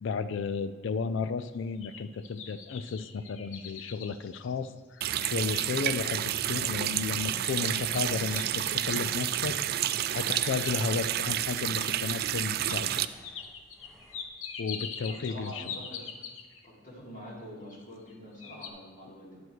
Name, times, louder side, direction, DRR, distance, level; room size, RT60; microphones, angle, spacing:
voice 1, 0.0-9.6 9.9-13.0 14.6-15.8, left 5 dB, 65° left, 13 dB, 0.4 m, -33 dB
sound 1, 1.5-5.1 5.6-5.7 6.2-6.6 7.4-9.1 10.1-11.1 11.8-11.9 12.6-12.8 13.2-16.7 17.7-18.1 18.4-18.7, left 6 dB, 85° left, 0.8 m, -43 dB
Water tap faucet, 5.0-13.0, right 12 dB, 50° right, 0.3 m, -30 dB
sound 2, 6.9-14.3, left 1 dB, ahead, 1.0 m, -57 dB
voice 2, 15.0-16.0 16.6-19.4, equal, 45° left, -3 dB, 2.3 m, -45 dB
11.0 x 4.7 x 6.1 m, 1.4 s
head